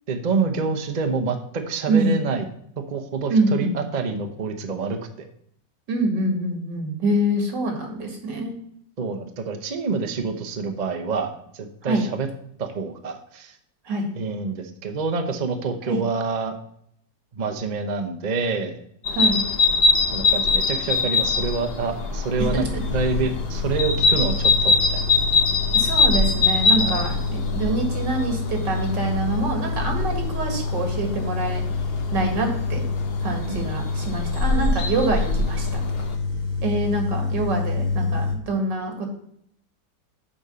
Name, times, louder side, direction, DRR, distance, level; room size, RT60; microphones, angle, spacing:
voice 1, 0.1-2.4 2.9-5.3 9.0-12.3 12.6-13.6 14.1-16.5 17.3-18.8 20.1-22.7 22.9-25.1 26.8-27.0 33.4-33.7, right 4 dB, 35° right, 6 dB, 0.7 m, -27 dB
voice 2, 1.9-2.2 3.3-3.7 5.9-8.5 11.8-12.1 13.9-14.1 15.9-16.0 19.1-19.4 22.4-22.8 25.7-31.6 32.1-32.8 33.2-35.8 36.6-39.1, right 2 dB, 85° right, 3 dB, 2.5 m, -25 dB
sound 1, 19.0-36.1, left 3 dB, 50° left, 0.8 m, -24 dB
sound 2, 22.4-38.4, left 3 dB, 30° left, 1.0 m, -28 dB
7.1 x 5.0 x 6.8 m, 0.69 s
omnidirectional pair, 1.9 m